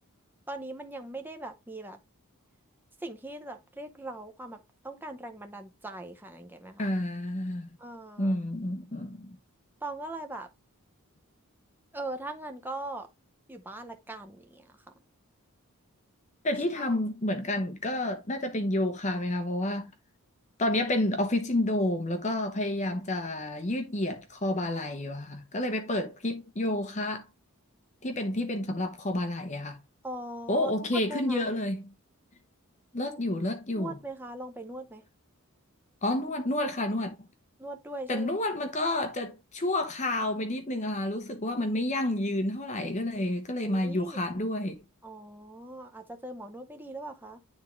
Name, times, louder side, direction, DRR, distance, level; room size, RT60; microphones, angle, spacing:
voice 1, 0.5-2.0 3.0-4.6 4.8-6.9 7.8-8.3 9.8-10.5 11.9-13.1 13.5-14.7 16.9-17.0 30.0-30.7 31.1-31.4 33.8-35.0 37.6-38.3 43.6-44.2 45.0-47.4, right 2 dB, 10° right, 0.7 m, -40 dB
voice 2, 6.8-7.7 8.2-9.3 16.4-19.9 20.6-27.2 28.0-29.8 30.5-31.9 32.9-34.0 36.0-37.2 38.1-44.8, left 1 dB, 30° left, 0.8 m, -30 dB
9.7 x 3.6 x 3.1 m
head